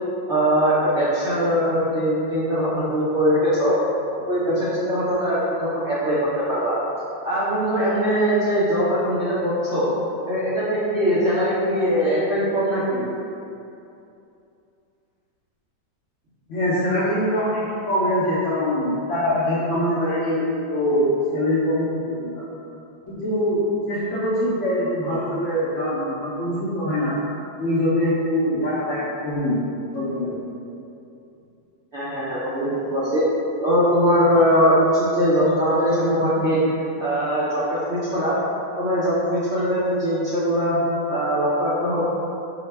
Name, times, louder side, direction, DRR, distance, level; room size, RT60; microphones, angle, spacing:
voice 1, 0.3-3.8 4.3-6.8 7.2-9.9 10.3-13.1 31.9-33.2 33.6-38.4 38.8-40.8 41.1-42.0, equal, 65° right, -10 dB, 0.7 m, -21 dB
voice 2, 16.5-22.4 23.1-27.2 27.6-29.7 29.9-30.4, equal, 65° left, -9 dB, 0.7 m, -23 dB
4.7 x 2.1 x 3.2 m, 2.7 s
omnidirectional pair, 1.8 m